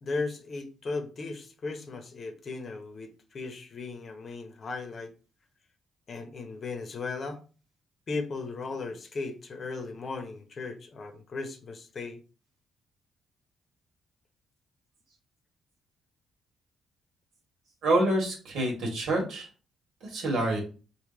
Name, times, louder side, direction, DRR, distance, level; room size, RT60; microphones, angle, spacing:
voice 1, 0.0-5.1 6.1-7.4 8.1-12.2, left 3 dB, 45° left, 0.8 m, -36 dB
voice 2, 17.8-19.5 20.0-20.6, right 1 dB, 75° right, 1.6 m, -27 dB
3.3 x 2.8 x 3.8 m
cardioid pair, 90°, 0 cm